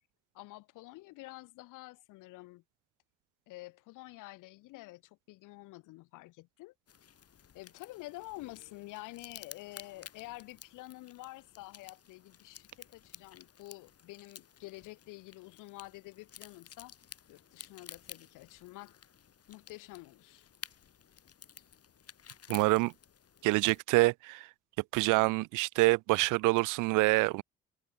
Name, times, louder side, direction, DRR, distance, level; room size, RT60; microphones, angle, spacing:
voice 1, 0.3-2.6 3.5-6.7 7.5-16.9 17.3-19.0 19.5-20.5, left 20 dB, 80° left, 2.0 m, -48 dB
sound 1, 6.9-23.8, left 8 dB, 50° left, 2.4 m, -53 dB
voice 2, 22.5-22.9 23.4-24.5 24.9-27.4, right 23 dB, 75° right, 0.6 m, -26 dB
hypercardioid pair, 55°, 31 cm